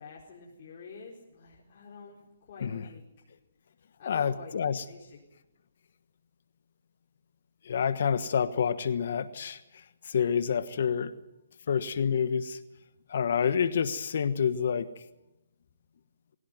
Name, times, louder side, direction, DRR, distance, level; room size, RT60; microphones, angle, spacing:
voice 1, 0.0-3.1 4.0-5.2, left 5 dB, 45° left, -3 dB, 4.6 m, -48 dB
voice 2, 4.1-4.8 7.6-9.6 10.0-11.1 11.7-12.6 13.1-14.9, left 7 dB, 60° left, 13 dB, 1.3 m, -28 dB
21.5 x 17.0 x 9.3 m, 0.92 s
hypercardioid pair, 150°, 0 cm